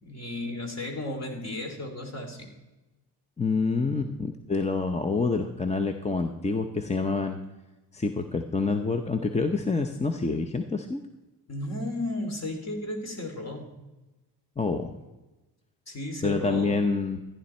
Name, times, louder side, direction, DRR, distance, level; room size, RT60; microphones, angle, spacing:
voice 1, 0.0-2.5 11.5-13.7 15.9-16.9, left 1 dB, 35° left, 4 dB, 2.7 m, -34 dB
voice 2, 3.4-7.4 7.9-11.0 14.6-14.9 16.2-17.2, left 4 dB, 15° left, 6 dB, 0.7 m, -27 dB
14.0 x 10.5 x 4.3 m, 1.1 s
cardioid pair, 95°, 43 cm